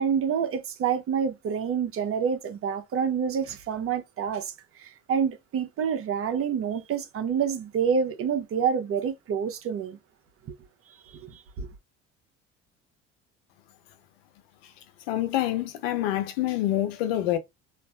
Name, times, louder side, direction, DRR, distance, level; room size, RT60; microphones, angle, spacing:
voice 1, 0.0-10.0 10.9-11.7, right 7 dB, 50° right, 0.9 m, -28 dB
voice 2, 15.1-17.4, left 13 dB, 85° left, 0.6 m, -26 dB
3.2 x 2.5 x 2.3 m
hypercardioid pair, 70°, 29 cm